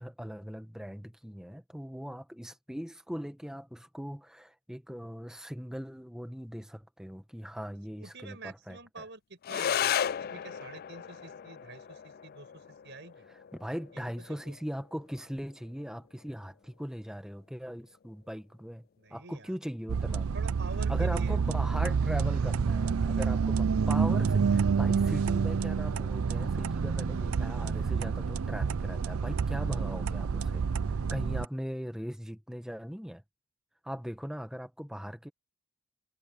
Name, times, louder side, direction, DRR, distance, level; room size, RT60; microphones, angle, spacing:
voice 1, 0.0-9.0 13.3-20.3 20.9-33.2 33.8-35.3, equal, 5° right, 1.5 m, -40 dB
voice 2, 8.0-9.9 10.3-13.3 13.9-14.0 14.3-14.5 19.0-19.6 20.3-21.4, right 3 dB, 55° right, 5.8 m, -47 dB
sound 1, 9.4-18.4, left 9 dB, 45° left, 0.3 m, -37 dB
sound 2, 19.9-31.5, right 5 dB, 75° right, 0.5 m, -28 dB
head